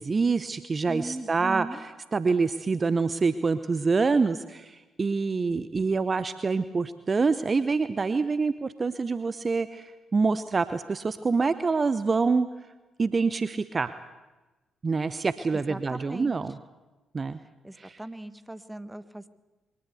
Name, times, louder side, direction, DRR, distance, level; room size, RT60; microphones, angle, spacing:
voice 1, 0.0-1.7 2.1-12.5 13.0-13.9 14.8-16.5 17.1-17.4 17.8-18.0, right 4 dB, 35° right, 13 dB, 0.8 m, -26 dB
voice 2, 0.9-1.9 15.5-16.3 17.6-19.3, right 1 dB, 10° right, 13 dB, 1.4 m, -38 dB
22.5 x 18.5 x 8.3 m, 1.2 s
figure-of-eight pair, 40°, 0 cm